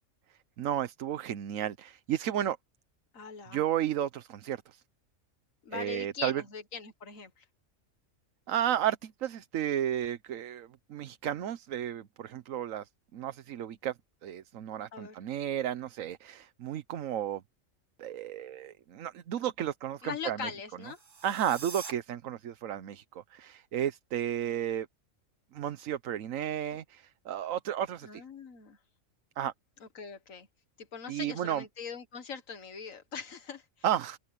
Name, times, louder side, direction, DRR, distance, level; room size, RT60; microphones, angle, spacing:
voice 1, 0.6-2.6 3.5-4.8 5.7-6.4 8.5-13.9 14.2-17.4 18.0-20.5 21.2-24.9 25.5-28.2 29.4-29.5 31.1-31.6 33.8-34.2, right 10 dB, 85° right, 1.2 m, -33 dB
voice 2, 3.1-3.6 5.7-7.4 14.9-15.2 20.0-21.0 28.0-28.8 30.0-30.5 30.8-33.6, left 6 dB, 85° left, 1.9 m, -41 dB
sound 1, 20.8-21.9, right 5 dB, 65° right, 1.9 m, -44 dB
omnidirectional pair, 1.3 m